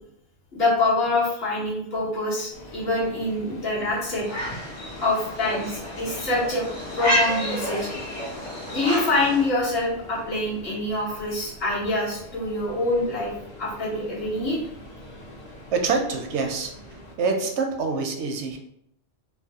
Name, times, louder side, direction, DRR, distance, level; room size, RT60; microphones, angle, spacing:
voice 1, 0.5-4.3 5.0-6.7 6.9-7.9 8.7-13.3 13.6-14.6, left 2 dB, 60° left, -6 dB, 1.3 m, -25 dB
Subway metro underground, 2.5-17.1, equal, 45° left, 0.8 m, -41 dB
sound 1, 4.2-9.5, equal, 85° left, 1.3 m, -30 dB
voice 2, 15.7-16.7 17.2-18.6, right 4 dB, 80° right, 3 dB, 0.9 m, -25 dB
3.1 x 2.2 x 2.7 m, 0.74 s
omnidirectional pair, 1.2 m